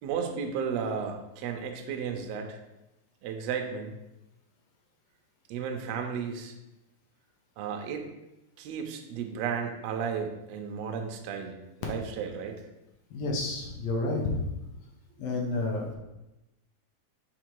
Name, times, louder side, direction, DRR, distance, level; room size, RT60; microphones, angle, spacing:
voice 1, 0.0-2.6 3.2-4.0 5.5-6.5 7.6-8.0 8.6-11.5 11.8-12.6, right 6 dB, 75° right, 4 dB, 1.6 m, -33 dB
voice 2, 13.1-14.4 15.2-15.9, left 2 dB, 65° left, -1 dB, 1.7 m, -30 dB
4.8 x 4.4 x 4.6 m, 0.94 s
omnidirectional pair, 3.6 m